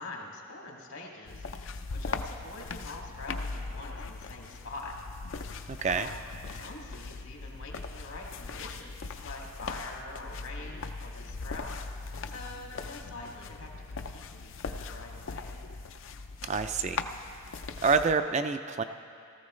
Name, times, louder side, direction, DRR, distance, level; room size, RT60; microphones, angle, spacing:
voice 1, 0.0-4.9 5.5-6.2 6.5-15.6, left 2 dB, 80° left, -2 dB, 2.3 m, -45 dB
sound 1, 1.3-18.1, left 4 dB, 60° left, 0.5 m, -40 dB
voice 2, 5.7-6.1 16.5-17.0 17.8-18.8, right 5 dB, 30° right, 9 dB, 0.3 m, -27 dB
18.0 x 14.0 x 3.2 m, 2.4 s
head